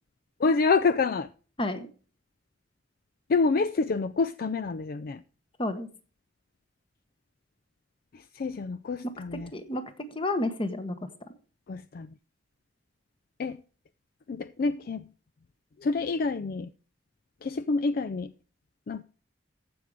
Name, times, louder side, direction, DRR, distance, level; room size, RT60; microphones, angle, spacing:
voice 1, 0.4-1.3 3.3-5.2 8.4-9.5 11.7-12.1 13.4-13.6 14.3-15.0 15.8-16.7 17.4-18.3 18.9-19.0, left 4 dB, 55° left, 0.4 m, -27 dB
voice 2, 9.3-10.9, left 1 dB, 30° left, 1.2 m, -31 dB
14.5 x 5.2 x 4.8 m
head